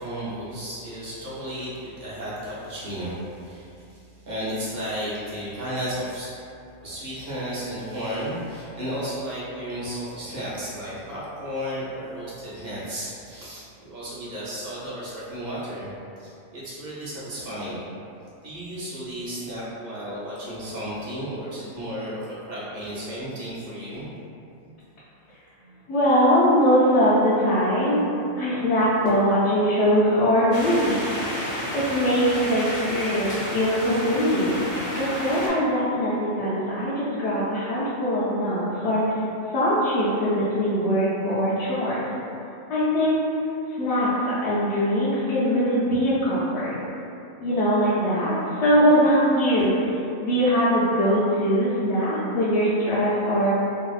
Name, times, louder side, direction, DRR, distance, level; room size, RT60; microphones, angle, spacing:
voice 1, 0.0-6.4 6.8-17.9 18.4-24.1, equal, 45° right, -10 dB, 0.8 m, -33 dB
voice 2, 25.9-28.0 28.4-31.1 31.7-34.5 34.9-39.2 39.5-42.1 42.7-43.2 43.8-46.8 47.4-53.6, equal, 70° left, -11 dB, 0.8 m, -22 dB
sound 1, 30.5-35.5, equal, 45° left, 0.5 m, -31 dB
2.7 x 2.3 x 2.4 m, 2.6 s
omnidirectional pair, 1.3 m